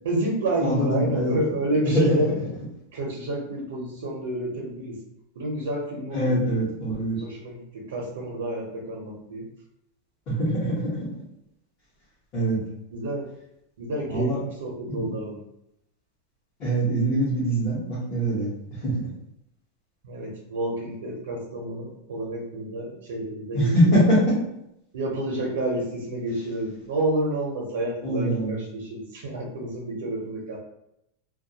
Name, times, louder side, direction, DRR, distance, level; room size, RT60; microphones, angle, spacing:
voice 1, 0.0-2.3 2.9-5.0 5.4-6.4 7.2-9.5 12.9-13.3 13.8-15.4 20.0-24.0 24.9-30.6, right 1 dB, 90° right, -2 dB, 0.6 m, -29 dB
voice 2, 0.6-1.4 1.8-2.2 6.1-7.2 10.3-10.8 12.3-12.6 14.1-14.4 14.9-15.1 16.6-18.5 18.8-19.1 23.5-24.2 28.0-28.6, right 1 dB, 25° left, -11 dB, 0.8 m, -23 dB
2.2 x 2.2 x 2.7 m, 0.81 s
supercardioid pair, 175°, 0 cm